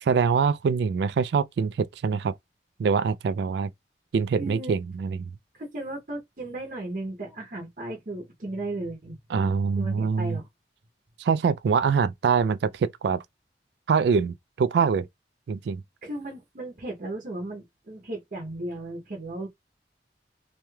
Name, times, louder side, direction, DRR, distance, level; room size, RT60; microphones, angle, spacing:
voice 1, 0.0-2.3 2.8-3.7 4.1-5.2 9.3-10.4 11.2-13.2 13.9-15.1 15.5-15.8, right 5 dB, 75° right, 0.3 m, -24 dB
voice 2, 4.4-4.8 5.5-9.2 9.7-10.5 16.0-19.5, right 2 dB, 50° right, 0.7 m, -35 dB
3.1 x 2.8 x 2.2 m
head